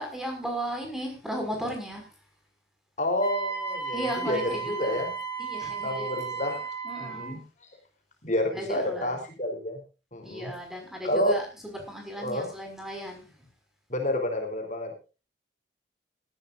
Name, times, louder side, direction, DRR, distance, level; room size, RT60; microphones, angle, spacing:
voice 1, 0.0-2.1 3.9-5.0 5.4-6.6 6.8-7.4 8.5-9.2 10.2-13.3, equal, ahead, 2 dB, 5.7 m, -35 dB
voice 2, 3.0-5.1 5.8-6.6 7.0-7.4 8.2-9.8 10.1-10.5 11.0-11.3 12.2-12.5 13.9-14.9, left 1 dB, 40° left, 3 dB, 3.7 m, -29 dB
Wind instrument woodwind instrument, 3.2-7.3, right 5 dB, 25° left, 4.7 m, -34 dB
18.5 x 14.5 x 2.6 m, 0.32 s
head